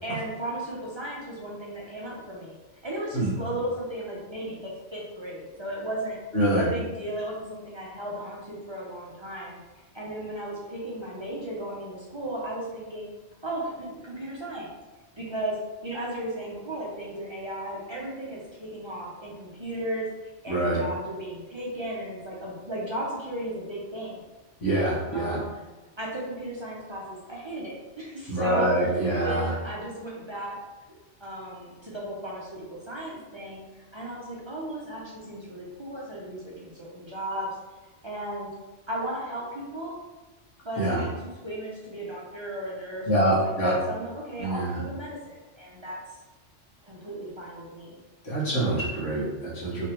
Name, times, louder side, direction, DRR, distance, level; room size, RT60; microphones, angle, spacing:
voice 1, 0.0-6.2 6.6-9.6 9.9-13.1 13.4-14.7 15.2-15.6 15.8-24.2 25.1-25.6 26.0-30.6 31.2-37.5 38.0-38.5 38.9-40.0 40.6-46.0 46.8-47.9, right 1 dB, 35° right, -5 dB, 0.5 m, -35 dB
voice 2, 6.3-6.7 20.5-20.8 24.6-25.4 28.3-29.5 40.8-41.0 43.1-43.7 44.4-44.7 48.2-49.9, right 1 dB, 90° left, -7 dB, 1.6 m, -25 dB
3.2 x 3.2 x 2.9 m, 1.2 s
omnidirectional pair, 1.2 m